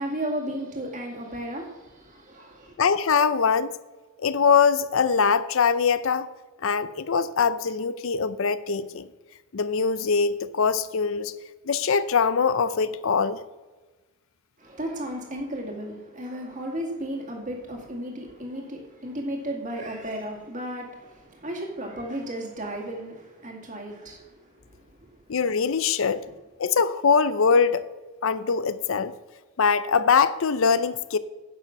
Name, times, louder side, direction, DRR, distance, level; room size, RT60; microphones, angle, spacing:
voice 1, 0.0-2.7 14.6-25.1, right 1 dB, 35° right, 1 dB, 2.1 m, -34 dB
voice 2, 2.8-3.8 4.2-6.3 6.6-9.1 9.5-11.3 11.7-13.4 25.3-26.2 26.6-27.8 28.2-29.1 29.6-31.2, left 5 dB, 65° left, 15 dB, 0.5 m, -22 dB
10.0 x 6.8 x 5.9 m, 1.2 s
head